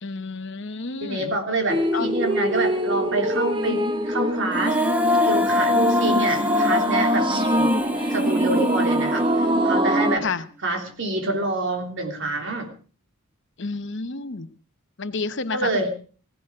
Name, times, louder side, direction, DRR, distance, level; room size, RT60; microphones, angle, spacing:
voice 1, 0.0-1.3 1.9-2.1 7.3-7.7 10.2-10.4 13.6-14.5 15.0-15.9, left 4 dB, 55° left, 11 dB, 1.0 m, -30 dB
voice 2, 1.0-4.8 5.2-10.3 10.6-12.7 15.5-15.9, right 2 dB, 55° right, 3 dB, 3.4 m, -27 dB
sound 1, 1.7-10.2, equal, 25° right, 1.2 m, -23 dB
Female singing, 4.5-9.7, left 2 dB, 5° right, 1.3 m, -24 dB
16.5 x 16.5 x 4.9 m, 0.38 s
head